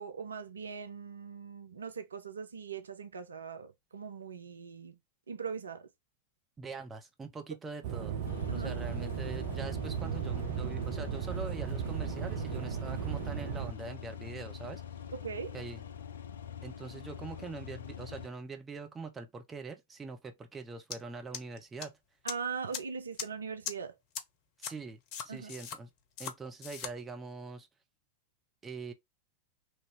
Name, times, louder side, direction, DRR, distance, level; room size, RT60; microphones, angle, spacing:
voice 1, 0.0-5.0 5.3-5.9 8.5-8.7 15.1-15.5 22.2-23.9 25.3-25.5, right 6 dB, 70° right, 0.4 m, -40 dB
voice 2, 6.6-8.2 8.5-14.8 15.5-15.8 16.6-22.0 24.6-25.9 26.2-27.7 28.6-28.9, right 4 dB, 15° right, 0.9 m, -43 dB
sound 1, 7.8-13.7, right 9 dB, 50° right, 0.9 m, -36 dB
sound 2, 8.3-18.3, left 9 dB, 65° left, 0.4 m, -44 dB
sound 3, 20.9-21.0 21.3-21.9 22.3-22.4 22.7-22.8 23.2-23.3 23.7-23.8 24.2-24.3 24.6-24.7 25.1-25.8 26.2-26.3 26.6-26.9, left 8 dB, 40° left, 0.9 m, -38 dB
3.2 x 2.8 x 4.6 m
figure-of-eight pair, 90°, 0 cm